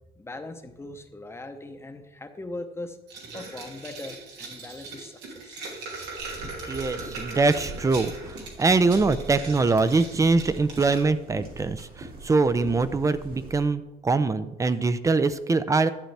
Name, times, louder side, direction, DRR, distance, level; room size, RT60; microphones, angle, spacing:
voice 1, 0.2-3.0 3.3-5.6 6.6-6.9, left 2 dB, 15° left, 7 dB, 0.8 m, -40 dB
sound 1, 3.1-11.0, right 3 dB, 90° right, 2.3 m, -39 dB
sound 2, 6.2-13.6, right 2 dB, 60° right, 2.3 m, -42 dB
voice 2, 6.7-15.9, right 3 dB, 20° right, 14 dB, 0.5 m, -23 dB
11.5 x 7.6 x 3.3 m, 0.99 s
cardioid pair, 110°, 17 cm